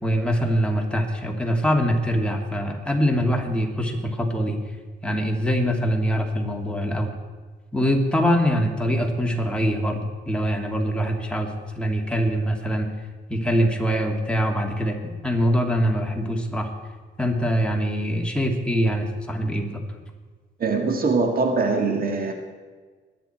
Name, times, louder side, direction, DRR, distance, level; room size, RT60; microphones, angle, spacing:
voice 1, 0.0-4.6 5.0-7.2 7.7-12.9 13.3-15.0 15.2-16.7 17.2-19.8, equal, 5° left, 1 dB, 2.6 m, -23 dB
voice 2, 20.6-22.3, right 4 dB, 45° right, 4 dB, 2.0 m, -22 dB
23.0 x 10.0 x 4.5 m, 1.4 s
cardioid pair, 90°, 20 cm